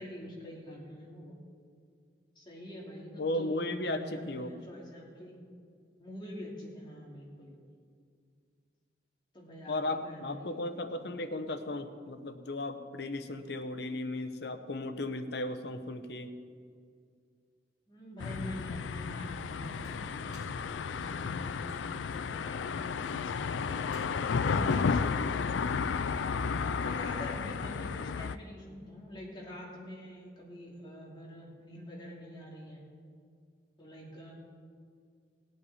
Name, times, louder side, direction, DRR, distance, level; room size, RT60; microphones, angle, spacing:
voice 1, 0.0-1.3 2.4-5.4 6.0-7.6 9.3-10.6 10.9-11.1 17.9-23.8 24.5-25.9 26.5-32.8 33.8-34.3, equal, 25° left, -3 dB, 2.6 m, -46 dB
voice 2, 3.2-4.5 9.7-16.3 24.5-25.0, left 2 dB, 60° left, 9 dB, 0.8 m, -35 dB
sound 1, 18.2-28.4, left 5 dB, 80° left, 0.4 m, -33 dB
sound 2, 19.6-20.5 20.9-22.3 22.8-23.3 23.8-24.2 24.6-24.9 25.4-26.4, right 1 dB, 25° right, 3.9 m, -53 dB
18.5 x 8.3 x 4.2 m, 2.2 s
head